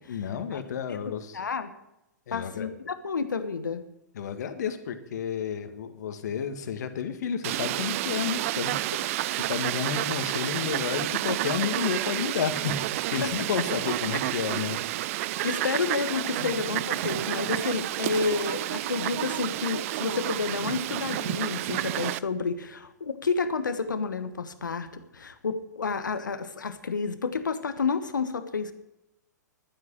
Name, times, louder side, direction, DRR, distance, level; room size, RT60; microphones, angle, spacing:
voice 1, 0.1-1.4 2.3-2.7 4.1-12.8 13.1-14.8 15.3-15.6 16.4-16.5, left 7 dB, 65° left, 9 dB, 1.9 m, -31 dB
voice 2, 1.3-1.7 2.3-3.8 13.2-13.3 15.4-28.7, left 5 dB, 85° left, 10 dB, 1.3 m, -30 dB
Fowl, 7.4-22.2, right 16 dB, 45° right, 0.5 m, -30 dB
11.5 x 9.9 x 9.0 m, 0.89 s
hypercardioid pair, 115°, 10 cm